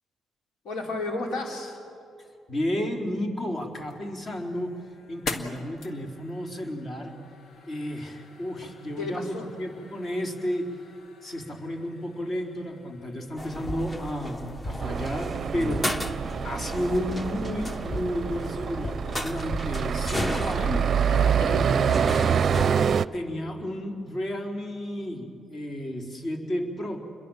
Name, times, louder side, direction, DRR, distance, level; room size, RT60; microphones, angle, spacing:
voice 1, 0.6-1.8 9.0-9.5 15.5-16.0 21.0-22.4, left 2 dB, 80° left, 1 dB, 4.5 m, -33 dB
voice 2, 2.5-4.7 5.1-7.3 7.7-10.8 11.2-16.0 16.4-21.0 22.8-27.0, equal, 45° left, 2 dB, 4.0 m, -32 dB
sound 1, 3.6-14.5, left 3 dB, 65° left, 2.0 m, -44 dB
sound 2, 13.4-22.7, left 1 dB, 20° left, 1.2 m, -34 dB
sound 3, 14.8-23.0, right 7 dB, 50° right, 0.5 m, -26 dB
29.0 x 22.5 x 7.3 m, 2.5 s
cardioid pair, 90°, 0 cm